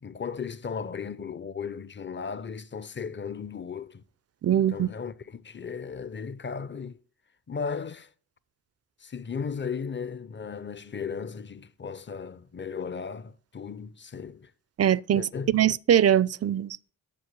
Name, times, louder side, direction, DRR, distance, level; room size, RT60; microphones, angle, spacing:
voice 1, 0.0-4.0 4.5-7.0 7.5-8.1 9.0-14.5 15.1-15.5, left 6 dB, 30° left, 0.6 m, -36 dB
voice 2, 4.4-4.9 14.8-16.9, right 10 dB, 40° right, 0.4 m, -22 dB
7.6 x 6.3 x 4.6 m
cardioid pair, 55°, 40 cm